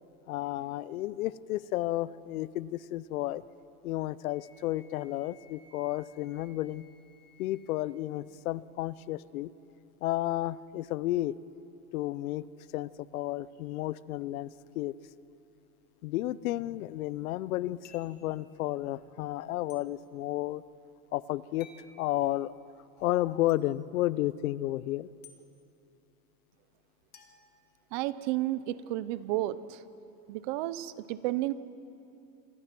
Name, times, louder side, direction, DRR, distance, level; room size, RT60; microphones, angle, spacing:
voice 1, 0.3-3.4 3.8-6.8 7.4-9.5 10.0-11.3 11.9-12.5 12.7-14.9 16.0-20.6 21.1-21.7 22.0-22.5 23.0-25.1, left 15 dB, 80° left, 19 dB, 0.7 m, -32 dB
Wind instrument woodwind instrument, 4.2-7.9, left 2 dB, 55° left, 4.2 m, -62 dB
sound 1, 17.8-18.2 19.7-19.8 21.6-21.9 23.5-23.6 25.2-25.4 27.1-28.2, left 6 dB, 25° left, 1.5 m, -55 dB
voice 2, 27.9-29.8 30.3-31.5, right 16 dB, 35° right, 16 dB, 0.5 m, -32 dB
27.0 x 18.5 x 6.1 m, 2.7 s
supercardioid pair, 165°, 42 cm